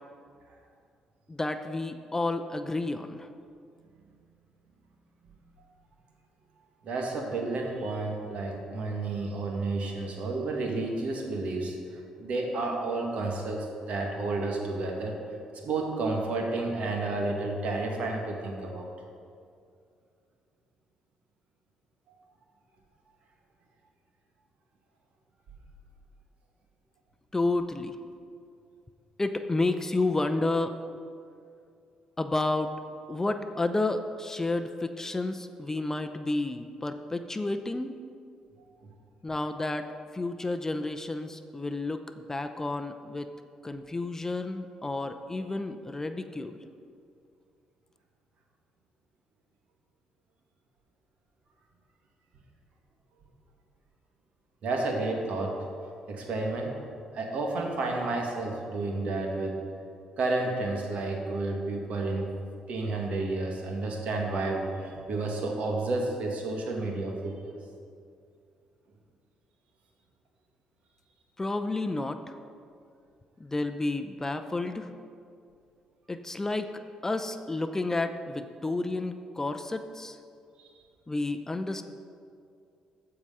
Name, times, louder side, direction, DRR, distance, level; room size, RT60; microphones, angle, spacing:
voice 1, 1.3-3.3 27.3-28.0 29.2-30.7 32.2-32.7 33.1-38.0 39.2-39.9 40.1-43.3 43.6-46.6 71.4-72.3 73.4-74.9 76.1-76.7 77.0-80.2 81.1-81.8, left 2 dB, 20° left, 8 dB, 0.6 m, -31 dB
voice 2, 6.8-15.1 15.6-18.9 38.8-38.9 54.6-55.6 56.1-56.7 57.1-59.6 60.2-62.3 62.7-67.5, right 2 dB, 65° right, 1 dB, 1.8 m, -31 dB
14.5 x 4.8 x 5.5 m, 2.4 s
supercardioid pair, 65°, 2 cm